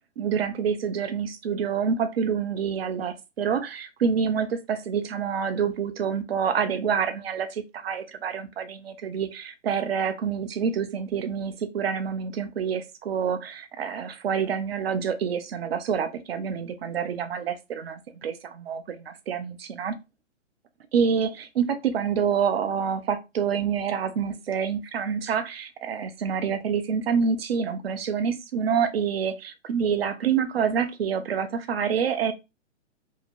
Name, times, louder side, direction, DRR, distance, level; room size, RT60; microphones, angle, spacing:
voice 1, 0.2-19.9 20.9-32.3, right 7 dB, 55° right, 0.6 m, -27 dB
2.8 x 2.6 x 2.7 m
hypercardioid pair, 140°, 37 cm